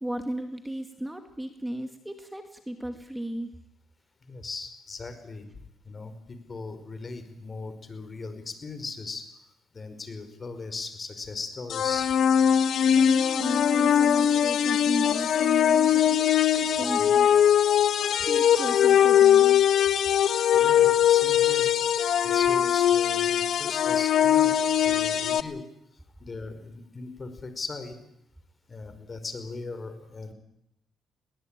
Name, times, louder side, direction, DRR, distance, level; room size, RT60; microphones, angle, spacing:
voice 1, 0.0-3.5 12.8-17.7 18.0-19.6, right 1 dB, 10° right, 6 dB, 2.2 m, -35 dB
voice 2, 4.2-5.5 5.8-9.2 9.7-12.1 17.0-17.1 20.5-21.7 22.2-25.6 26.2-28.0 28.7-30.3, left 3 dB, 35° left, 9 dB, 4.9 m, -38 dB
sound 1, 11.7-25.4, left 9 dB, 65° left, 1.2 m, -21 dB
22.0 x 19.0 x 9.0 m, 0.80 s
cardioid pair, 90°, 0 cm